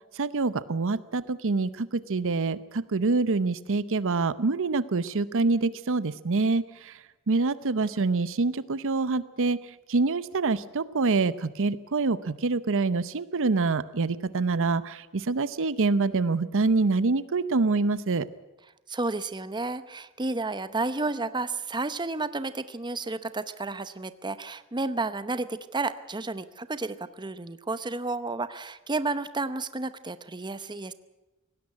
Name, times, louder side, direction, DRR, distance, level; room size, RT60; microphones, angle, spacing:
voice 1, 0.1-7.0 7.3-18.3, right 3 dB, 60° right, 16 dB, 0.7 m, -26 dB
voice 2, 18.9-30.9, right 3 dB, 20° right, 13 dB, 0.8 m, -31 dB
19.0 x 17.0 x 9.7 m, 1.0 s
head